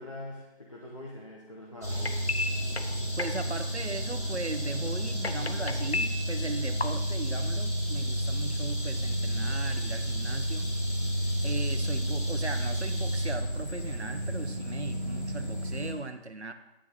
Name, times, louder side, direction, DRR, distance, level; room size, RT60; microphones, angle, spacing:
voice 1, 0.0-2.3, left 1 dB, 30° left, -3 dB, 0.9 m, -43 dB
sound 1, 1.8-15.9, equal, 15° right, 2.0 m, -31 dB
sound 2, 1.9-6.9, left 3 dB, 70° left, 0.7 m, -36 dB
voice 2, 3.2-10.7 11.4-16.5, right 3 dB, 85° right, 8 dB, 0.9 m, -38 dB
10.0 x 8.6 x 3.8 m, 0.98 s
figure-of-eight pair, 165°, 32 cm